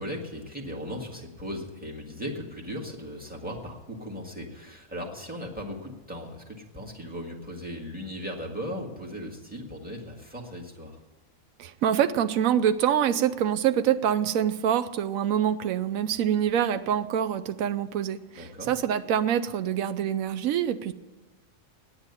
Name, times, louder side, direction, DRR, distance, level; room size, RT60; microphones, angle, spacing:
voice 1, 0.0-11.0 18.4-18.7, equal, 5° right, -2 dB, 1.8 m, -37 dB
voice 2, 11.6-20.9, right 9 dB, 90° right, 11 dB, 1.0 m, -25 dB
9.6 x 8.8 x 9.7 m, 1.2 s
omnidirectional pair, 1.4 m